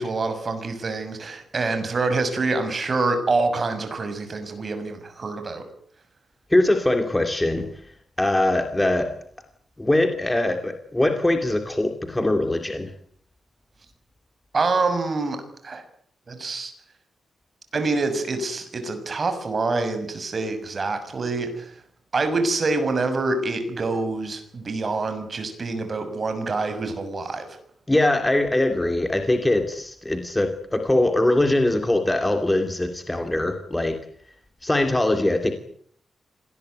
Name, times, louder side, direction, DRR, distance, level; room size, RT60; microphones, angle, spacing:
voice 1, 0.0-5.6 14.5-15.8 16.3-16.7 17.7-21.8 22.1-27.5, right 3 dB, 35° right, 8 dB, 6.4 m, -26 dB
voice 2, 6.5-7.7 8.2-9.1 9.8-12.9 27.9-33.9 34.6-35.5, left 1 dB, 10° left, 6 dB, 2.6 m, -22 dB
26.5 x 19.5 x 9.4 m, 0.62 s
wide cardioid pair, 145°, 0 cm